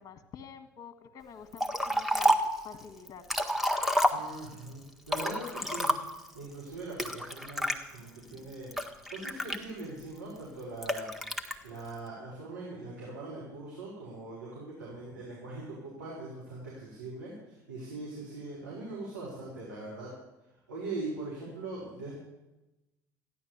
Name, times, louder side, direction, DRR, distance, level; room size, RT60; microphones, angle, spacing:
voice 1, 0.0-2.4 2.6-3.2 8.2-8.5, left 7 dB, 35° left, 8 dB, 1.6 m, -48 dB
Liquid, 1.6-2.6 3.1-4.6 5.1-6.3 7.0-7.8 8.4-10.0 10.8-11.5, equal, ahead, 1.6 m, -29 dB
voice 2, 4.1-5.9 6.3-8.7 9.1-11.1 11.6-20.1 20.7-22.1, right 2 dB, 85° right, -7 dB, 4.6 m, -41 dB
14.5 x 11.0 x 7.3 m, 1.0 s
figure-of-eight pair, 65°, 10 cm